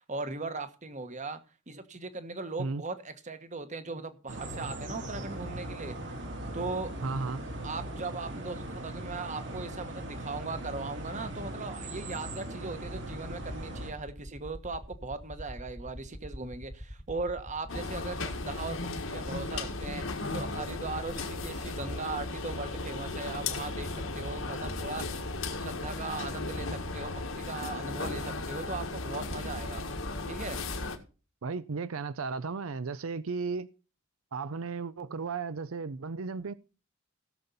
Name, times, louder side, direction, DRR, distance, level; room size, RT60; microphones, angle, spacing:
voice 1, 0.0-1.4 1.7-5.9 6.5-6.9 7.6-20.0 20.3-25.2 25.5-29.8 30.3-30.6 35.1-35.2, right 3 dB, 35° right, 1.3 m, -38 dB
sound 1, 4.3-13.9, right 1 dB, 65° right, 3.2 m, -39 dB
voice 2, 7.0-7.4 31.4-33.7 34.3-36.5, right 4 dB, 85° right, 0.6 m, -34 dB
sound 2, 12.8-30.9, equal, 5° left, 1.2 m, -46 dB
sound 3, 17.7-31.0, left 3 dB, 80° left, 1.8 m, -36 dB
17.0 x 7.0 x 4.1 m
head